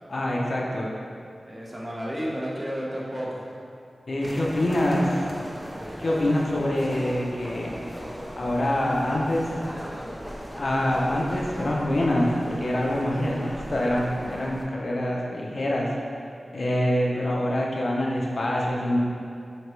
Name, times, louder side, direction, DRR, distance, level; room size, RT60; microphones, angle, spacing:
voice 1, 0.1-0.9 4.1-5.0 6.0-7.7 8.4-9.6 10.6-15.9 16.5-19.0, left 1 dB, 60° left, -3 dB, 0.5 m, -25 dB
voice 2, 1.5-3.5 4.4-5.2 9.5-10.3, equal, 30° right, -5 dB, 0.8 m, -34 dB
sound 1, 4.2-14.7, equal, 5° right, 0.4 m, -38 dB
4.5 x 2.9 x 3.0 m, 2.4 s
wide cardioid pair, 60°, 0 cm